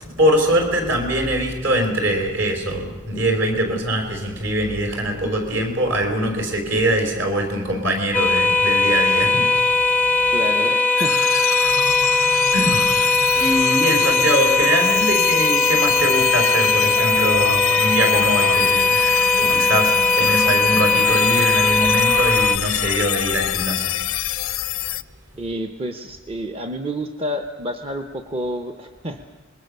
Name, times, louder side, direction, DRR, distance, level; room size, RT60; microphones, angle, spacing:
voice 1, 0.0-10.1 11.8-11.9 12.5-19.0 19.3-23.9, equal, 60° right, 3 dB, 4.7 m, -23 dB
sound 1, 8.1-22.6, left 3 dB, 5° left, 0.6 m, -19 dB
voice 2, 10.3-11.2 25.3-29.2, equal, 25° right, 7 dB, 0.9 m, -29 dB
sound 2, 11.0-25.0, left 11 dB, 80° left, 0.6 m, -26 dB
25.5 x 21.5 x 6.7 m, 1.3 s
head